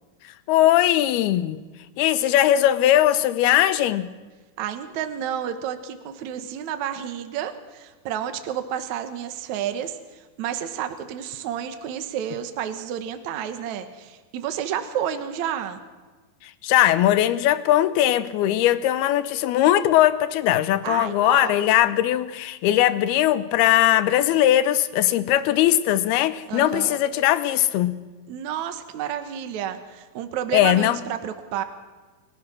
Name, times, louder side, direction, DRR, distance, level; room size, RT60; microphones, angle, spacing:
voice 1, 0.5-1.6 2.0-4.1 16.6-28.0 30.5-31.0, left 13 dB, 85° left, 2.8 m, -20 dB
voice 2, 4.6-15.8 20.8-21.6 26.5-27.0 28.3-31.6, right 9 dB, 60° right, 2.2 m, -30 dB
29.0 x 16.5 x 6.3 m
omnidirectional pair, 4.4 m